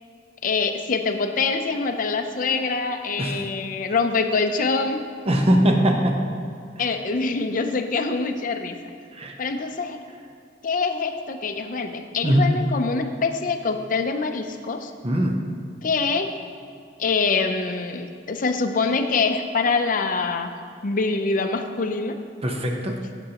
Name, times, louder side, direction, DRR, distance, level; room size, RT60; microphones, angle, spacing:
voice 1, 0.4-5.0 6.8-8.8 9.4-10.0 10.6-14.9 15.8-16.3 17.0-20.5 20.8-22.2, left 4 dB, 50° left, 7 dB, 0.6 m, -24 dB
voice 2, 5.3-6.2 9.2-9.3 12.2-12.5 15.0-15.4 22.4-23.0, equal, 35° right, 2 dB, 0.9 m, -20 dB
12.0 x 7.8 x 2.9 m, 2.3 s
head